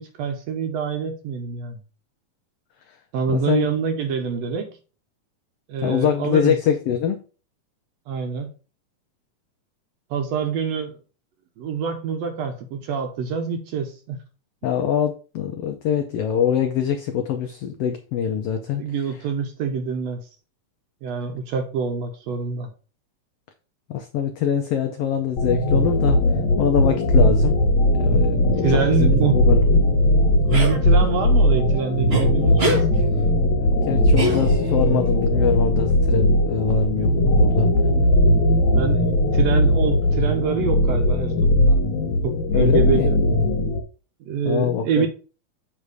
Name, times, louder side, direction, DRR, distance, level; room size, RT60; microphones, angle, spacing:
voice 1, 0.0-1.8 3.1-4.7 5.7-6.6 8.1-8.5 10.1-11.0 11.6-14.2 18.7-20.2 21.0-22.7 28.6-29.4 30.4-32.9 37.0-37.4 37.9-38.3 38.7-41.8 42.2-43.2 44.3-45.1, right 6 dB, 70° right, 5 dB, 1.7 m, -26 dB
voice 2, 3.3-3.7 5.8-7.2 14.6-18.8 23.9-26.2 26.6-27.5 28.0-29.6 33.4-37.7 42.5-43.1 44.4-45.1, left 8 dB, 85° left, 6 dB, 1.3 m, -24 dB
sound 1, 25.4-43.8, left 1 dB, 70° left, 2.3 m, -19 dB
sound 2, 30.5-30.8 32.1-32.2 32.6-32.8 34.2-34.8, equal, 85° right, 0.5 m, -24 dB
8.0 x 3.3 x 4.8 m, 0.36 s
omnidirectional pair, 3.5 m